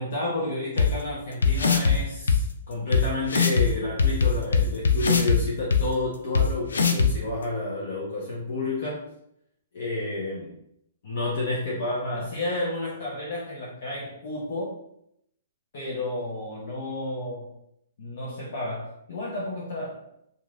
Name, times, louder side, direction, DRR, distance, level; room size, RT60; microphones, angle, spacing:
voice 1, 0.0-9.0 9.7-10.5 11.0-14.7 15.7-17.5 18.0-20.0, left 2 dB, 65° left, -5 dB, 0.8 m, -31 dB
sound 1, 0.8-0.9 1.4-1.9 2.3-2.4 2.9-3.0 3.3-3.6 4.0-5.4 5.7-5.8 6.3-6.4 6.7-7.1, left 6 dB, 85° left, 0.4 m, -20 dB
3.0 x 2.7 x 2.4 m, 0.74 s
hypercardioid pair, 130°, 0 cm